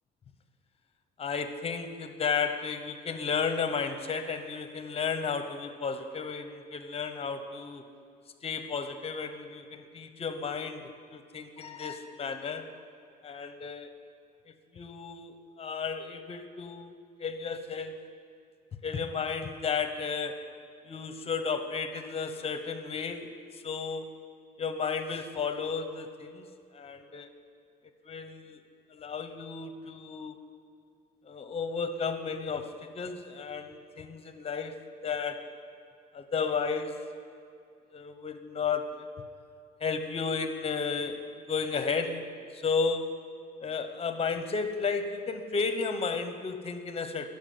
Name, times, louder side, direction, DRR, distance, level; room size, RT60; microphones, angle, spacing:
voice 1, 1.2-7.8 8.4-12.7 13.2-13.9 14.7-16.9 17.2-18.0 18.8-20.5 20.8-23.3 23.6-24.2 24.6-26.5 26.7-27.3 28.1-28.6 28.9-30.4 31.3-34.8 35.0-35.5 36.1-37.0 37.9-39.1 39.8-43.1 43.6-47.3, left 5 dB, 35° left, 9 dB, 1.0 m, -33 dB
13.0 x 7.0 x 9.5 m, 2.4 s
cardioid pair, 110°, 17 cm